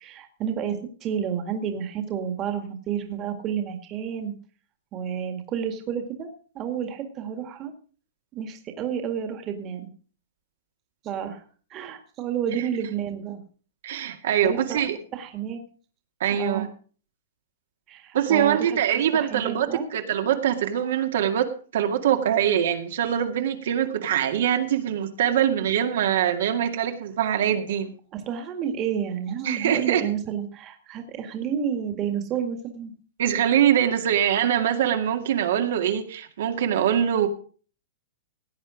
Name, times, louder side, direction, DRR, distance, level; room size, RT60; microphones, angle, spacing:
voice 1, 0.0-4.3 4.9-6.3 6.6-7.7 8.3-9.9 11.0-11.4 11.7-13.4 14.4-14.8 15.1-15.6 16.3-16.7 17.9-18.8 19.1-19.9 28.1-32.9, right 8 dB, 25° right, 6 dB, 1.9 m, -30 dB
voice 2, 13.8-15.0 16.2-16.7 18.1-27.9 29.4-30.1 33.2-37.3, right 9 dB, 65° right, 5 dB, 2.0 m, -23 dB
17.0 x 9.0 x 5.0 m, 0.41 s
hypercardioid pair, 160°, 0 cm